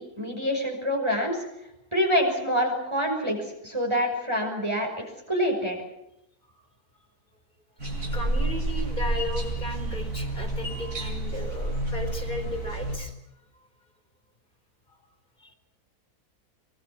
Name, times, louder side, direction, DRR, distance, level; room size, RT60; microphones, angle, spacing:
voice 1, 0.0-1.4 1.9-5.8, equal, 15° right, 1 dB, 5.7 m, -26 dB
sound 1, 7.8-13.0, right 2 dB, 55° right, 8.4 m, -29 dB
voice 2, 8.1-13.1 15.4-15.5, left 1 dB, 30° left, 6 dB, 4.7 m, -35 dB
25.0 x 24.5 x 6.1 m, 0.84 s
omnidirectional pair, 1.7 m